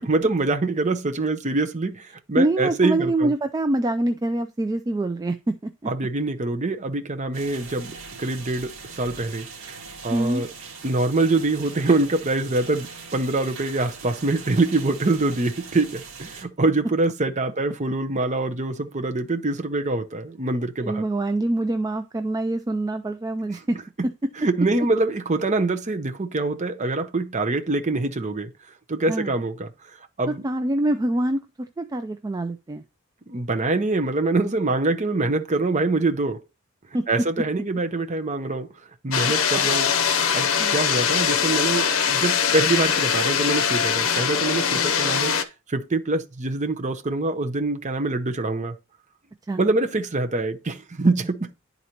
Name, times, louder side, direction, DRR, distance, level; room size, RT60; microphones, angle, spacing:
voice 1, 0.0-3.3 5.9-9.5 10.0-10.5 10.8-12.9 13.1-21.0 24.4-28.5 28.9-29.7 30.2-30.4 33.3-36.4 37.1-38.7 39.0-39.9 40.3-45.3 45.7-48.7 49.6-51.5, right 2 dB, 35° right, 0.7 m, -24 dB
voice 2, 2.4-5.7 10.1-10.4 20.8-23.8 29.1-29.3 30.4-32.8 36.9-37.1 39.2-39.7 40.6-40.8 49.5-49.6, right 1 dB, 15° right, 0.3 m, -25 dB
sound 1, 7.3-16.4, right 4 dB, 75° right, 1.8 m, -41 dB
sound 2, 39.1-45.4, left 7 dB, 65° left, 0.7 m, -22 dB
11.0 x 4.0 x 2.9 m
head